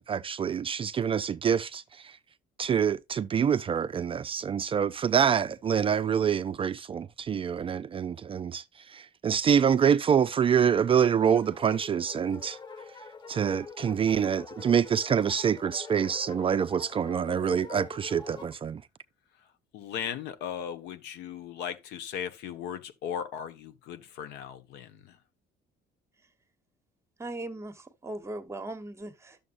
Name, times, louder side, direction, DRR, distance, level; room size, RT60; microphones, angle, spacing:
voice 1, 0.0-2.1 2.6-8.6 8.9-12.6 13.3-18.8, right 7 dB, 35° right, 0.4 m, -26 dB
sound 1, 11.2-18.6, left 4 dB, 25° left, 1.4 m, -45 dB
voice 2, 19.7-25.2, left 8 dB, 85° left, 1.1 m, -37 dB
voice 3, 27.2-29.4, right 2 dB, 15° right, 1.1 m, -38 dB
11.5 x 7.0 x 2.5 m
cardioid pair, 110°, 17 cm